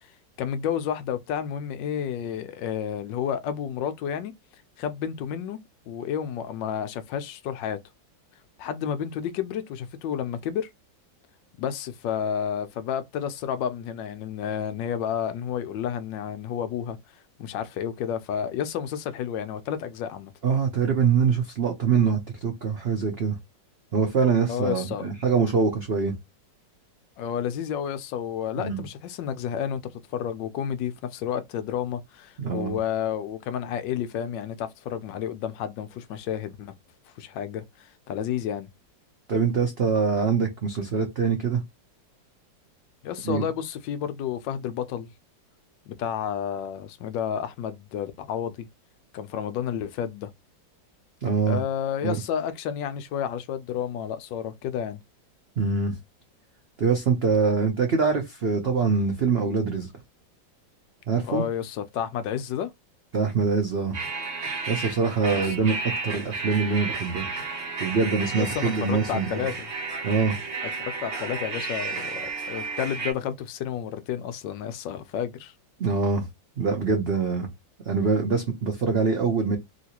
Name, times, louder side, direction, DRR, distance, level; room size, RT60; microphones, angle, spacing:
voice 1, 0.4-4.3 4.8-5.6 5.9-7.8 8.6-10.7 11.6-17.0 17.4-20.3 24.5-25.1 27.2-29.8 30.1-36.7 37.2-38.7 43.0-45.1 45.9-48.7 49.1-50.3 51.5-55.0 61.2-62.7 65.3-65.6 68.4-69.7 70.8-75.5, left 9 dB, 80° left, 1.2 m, -31 dB
voice 2, 20.4-23.4 23.9-26.1 28.6-28.8 32.4-32.8 39.3-41.6 43.2-43.4 51.2-51.6 52.0-52.2 55.6-55.9 56.8-59.9 61.1-61.4 63.1-64.0 64.7-67.3 67.8-69.4 70.0-70.3 75.8-76.3 76.6-77.5 77.9-79.6, right 5 dB, 80° right, 0.5 m, -24 dB
sound 1, 63.9-73.1, right 4 dB, 45° right, 1.1 m, -33 dB
3.1 x 2.9 x 2.8 m
omnidirectional pair, 2.0 m